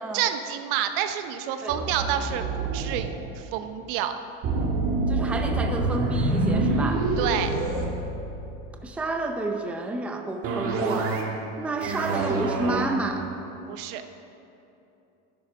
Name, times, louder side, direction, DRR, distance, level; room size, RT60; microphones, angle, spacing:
voice 1, 0.1-4.2 7.2-7.5 13.7-14.0, right 10 dB, 65° right, 8 dB, 0.9 m, -29 dB
sound 1, 1.7-3.1 4.4-8.7 10.4-11.4 11.7-12.9, right 3 dB, 45° right, 1.7 m, -26 dB
voice 2, 5.1-7.1 8.8-11.2 11.6-13.3, right 2 dB, 5° right, 4 dB, 0.5 m, -30 dB
12.0 x 11.5 x 4.8 m, 2.8 s
supercardioid pair, 145°, 31 cm